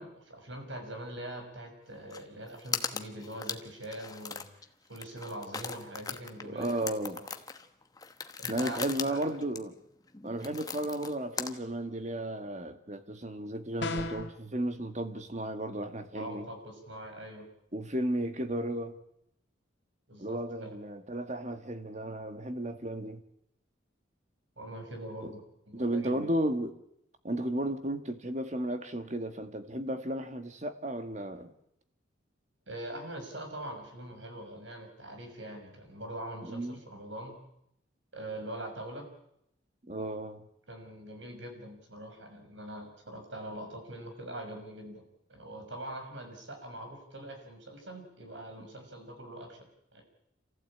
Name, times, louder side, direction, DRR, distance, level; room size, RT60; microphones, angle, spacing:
voice 1, 0.0-6.9 8.4-9.3 16.1-17.5 20.1-20.8 24.6-25.4 25.7-26.3 32.7-37.4 38.1-39.1 40.7-45.0 45.3-49.7 49.9-50.0, right 1 dB, 75° right, 6.0 m, -43 dB
sound 1, 2.1-2.2 2.5-4.7 4.9-11.6, left 5 dB, 20° left, 1.1 m, -39 dB
voice 2, 6.4-7.2 8.5-9.7 10.2-16.4 17.7-18.9 20.2-23.2 25.2-25.3 25.7-26.7 27.2-31.5 36.4-36.8 39.9-40.4, right 1 dB, 35° right, 1.7 m, -34 dB
sound 2, 13.8-14.3, left 2 dB, 65° left, 3.2 m, -33 dB
27.0 x 15.5 x 8.6 m
head